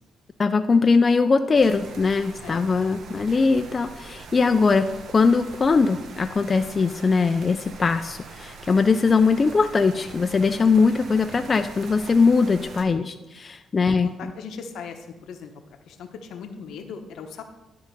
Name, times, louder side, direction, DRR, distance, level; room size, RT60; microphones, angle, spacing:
voice 1, 0.4-14.1, left 4 dB, 35° left, 8 dB, 0.4 m, -21 dB
sound 1, 1.5-12.9, right 4 dB, 65° right, 0.8 m, -43 dB
voice 2, 13.9-15.5 15.9-17.4, left 6 dB, 75° left, 6 dB, 0.9 m, -39 dB
11.0 x 3.8 x 5.2 m, 1.0 s
cardioid pair, 90°, 0 cm